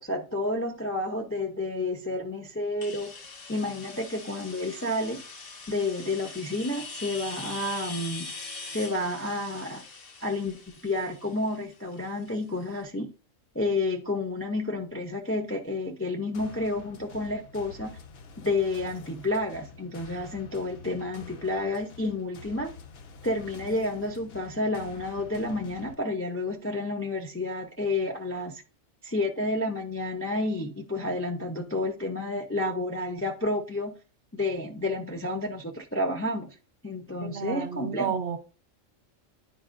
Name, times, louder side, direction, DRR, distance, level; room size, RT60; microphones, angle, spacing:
voice 1, 0.0-3.1 3.5-5.2 5.7-8.3 8.7-9.8 10.2-13.1 13.5-17.9 18.4-22.7 23.2-28.6 29.0-34.0 34.3-36.5 36.8-38.1, left 2 dB, 20° left, 0.3 m, -30 dB
sound 1, 2.8-12.4, left 4 dB, 80° left, 1.3 m, -42 dB
sound 2, 16.3-25.9, left 5 dB, 60° left, 0.8 m, -47 dB
voice 2, 37.2-38.4, right 6 dB, 70° right, 1.0 m, -31 dB
9.9 x 4.4 x 2.5 m
omnidirectional pair, 1.3 m